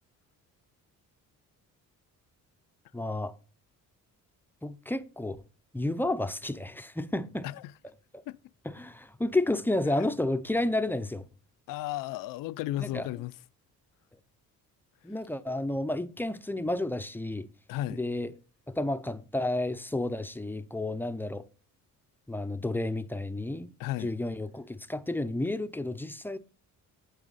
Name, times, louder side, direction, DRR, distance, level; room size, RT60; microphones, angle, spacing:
voice 1, 2.9-3.3 4.6-5.4 5.7-7.5 8.1-8.2 8.7-11.3 12.8-13.0 15.0-17.5 18.0-18.3 18.7-21.4 22.3-23.7 24.0-26.4, left 2 dB, 5° left, 0.5 m, -31 dB
voice 2, 11.7-13.4 15.0-15.2 17.7-18.0 23.8-24.1, left 15 dB, 90° left, 0.5 m, -35 dB
9.1 x 8.3 x 4.0 m
cardioid pair, 130°, 32 cm